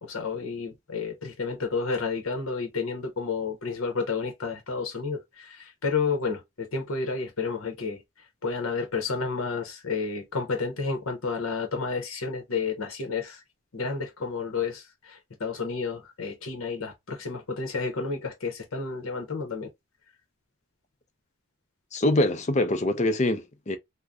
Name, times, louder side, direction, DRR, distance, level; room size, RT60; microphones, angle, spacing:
voice 1, 0.0-13.4 13.7-19.7, left 4 dB, 75° left, 0.8 m, -31 dB
voice 2, 21.9-23.8, left 1 dB, 35° left, 0.5 m, -24 dB
2.6 x 2.1 x 3.5 m
head